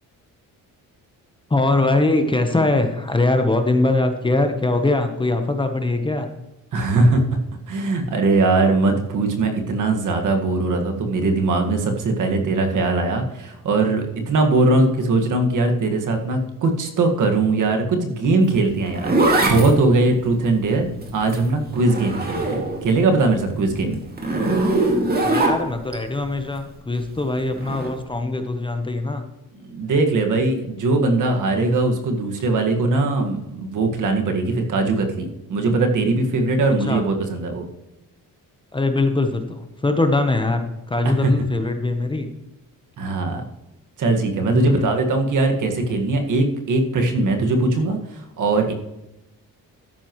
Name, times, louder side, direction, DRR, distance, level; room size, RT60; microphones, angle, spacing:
voice 1, 1.5-6.3 25.2-29.3 36.9-37.0 38.7-42.3 44.5-44.9, left 2 dB, 15° left, 6 dB, 1.0 m, -22 dB
voice 2, 6.7-7.2 7.7-20.9 21.1-24.0 29.7-37.7 41.1-41.3 43.0-43.4 44.0-48.7, right 2 dB, 60° right, 3 dB, 1.8 m, -20 dB
Zipper (clothing), 18.5-22.9 23.3-26.0 27.6-27.9, right 2 dB, 25° right, 2.3 m, -22 dB
13.0 x 10.5 x 3.1 m, 0.95 s
cardioid pair, 135°, 34 cm